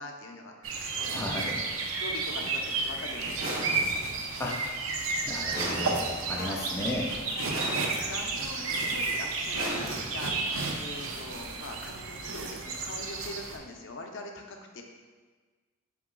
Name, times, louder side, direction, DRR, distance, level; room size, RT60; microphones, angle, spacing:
voice 1, 0.0-1.2 2.0-3.6 6.3-6.7 7.3-7.5 7.9-10.3 10.8-14.8, left 2 dB, 60° left, 2 dB, 0.5 m, -42 dB
cattle eating grass, 0.6-13.6, right 3 dB, 70° right, 0.5 m, -32 dB
voice 2, 1.1-1.6 4.4-4.6 5.2-7.2, left 1 dB, 10° left, -2 dB, 0.3 m, -34 dB
sound 1, 3.4-4.2 5.5-6.4 7.5-8.3 9.5-10.4, right 1 dB, 85° right, 1.1 m, -36 dB
4.6 x 2.9 x 3.7 m, 1.4 s
head